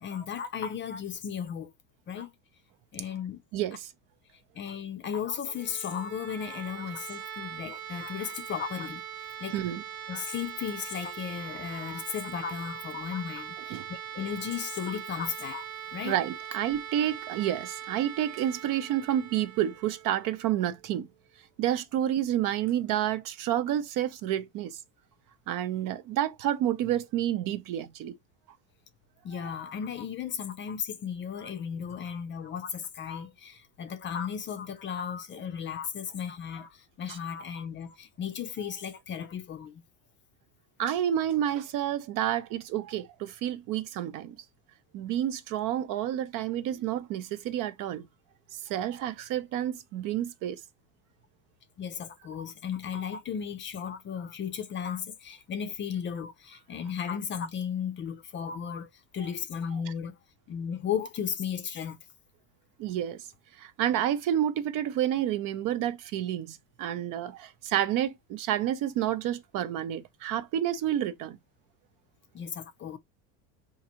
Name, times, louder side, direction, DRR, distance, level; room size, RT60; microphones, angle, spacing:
voice 1, 0.0-1.7 2.1-2.3 2.9-3.4 4.6-9.6 10.1-15.6 15.9-16.2 29.2-39.8 51.8-58.9 59.1-60.2 60.5-62.0 72.3-73.0, left 8 dB, 30° left, 0.5 m, -35 dB
voice 2, 3.5-3.9 9.5-9.8 13.7-13.9 16.0-21.1 21.6-24.8 25.5-28.2 29.3-29.4 37.1-37.2 40.8-44.4 44.9-48.1 48.5-50.6 62.8-63.2 63.6-71.4, right 11 dB, 50° right, 0.6 m, -29 dB
sound 1, 5.4-21.2, right 9 dB, 90° right, 1.5 m, -42 dB
3.9 x 2.6 x 2.8 m
supercardioid pair, 115°, 40 cm